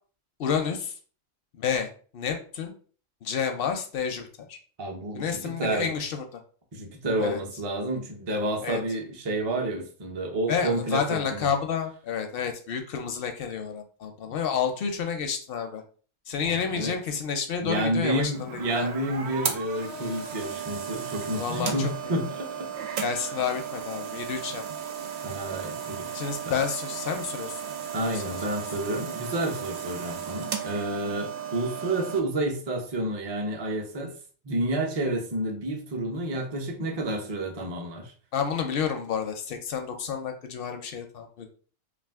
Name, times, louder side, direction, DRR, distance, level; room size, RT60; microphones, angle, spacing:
voice 1, 0.4-0.9 1.5-2.7 3.2-4.6 5.1-6.4 7.2-7.4 8.6-8.8 10.5-15.8 16.3-18.9 21.4-21.9 23.0-24.6 26.1-27.5 28.0-28.3 38.3-41.5, left 7 dB, 65° left, 5 dB, 0.6 m, -30 dB
voice 2, 4.8-5.9 6.7-11.5 16.4-17.0 17.6-22.8 23.2-23.3 25.2-26.6 27.9-34.1 34.4-38.1, right 1 dB, 35° right, 1 dB, 0.4 m, -30 dB
sound 1, 18.2-32.2, right 7 dB, 65° right, 0.8 m, -35 dB
2.4 x 2.4 x 3.4 m, 0.41 s
omnidirectional pair, 1.3 m